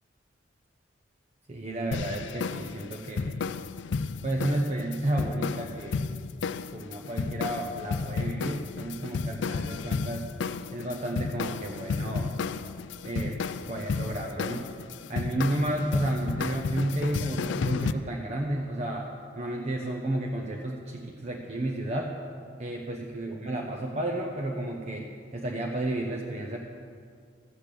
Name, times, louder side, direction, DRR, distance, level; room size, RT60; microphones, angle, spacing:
voice 1, 1.5-3.4 4.2-6.0 6.7-10.3 10.7-12.3 13.0-13.4 13.7-14.7 15.1-19.1 19.4-22.1 22.6-26.6, right 1 dB, 35° right, 0 dB, 0.8 m, -32 dB
sound 1, 1.9-17.9, left 4 dB, 65° left, 0.4 m, -32 dB
13.5 x 8.1 x 6.8 m, 2.1 s
head